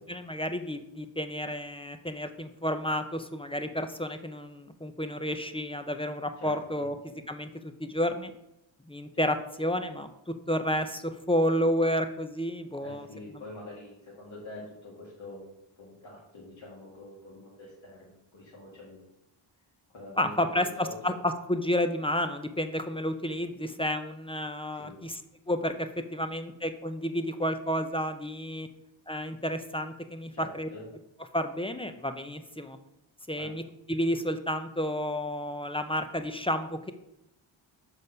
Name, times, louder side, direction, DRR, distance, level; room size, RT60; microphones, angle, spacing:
voice 1, 0.0-7.0 7.3-8.3 8.9-13.1 20.2-25.2 25.5-28.7 29.1-30.7 31.3-32.8 33.3-33.6 33.9-36.9, equal, 15° left, 8 dB, 0.4 m, -31 dB
voice 2, 6.4-6.9 12.8-15.5 15.8-19.0 19.9-21.2 24.7-25.0 30.3-30.8 33.4-33.6, left 2 dB, 70° left, -6 dB, 2.0 m, -45 dB
6.3 x 5.1 x 5.4 m, 0.87 s
wide cardioid pair, 150°, 48 cm